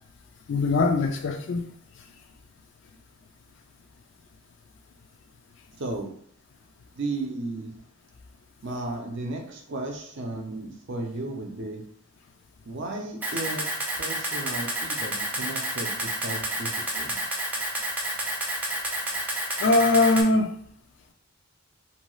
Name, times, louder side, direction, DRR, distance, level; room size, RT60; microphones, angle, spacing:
voice 1, 0.5-1.7 19.6-20.5, left 3 dB, 60° left, 0.3 m, -21 dB
voice 2, 5.8-6.1 7.0-7.7 8.6-11.8 12.7-17.2, right 2 dB, 60° right, 0.5 m, -34 dB
Camera, 13.2-20.2, right 1 dB, 10° right, 0.4 m, -30 dB
2.6 x 2.3 x 3.1 m
head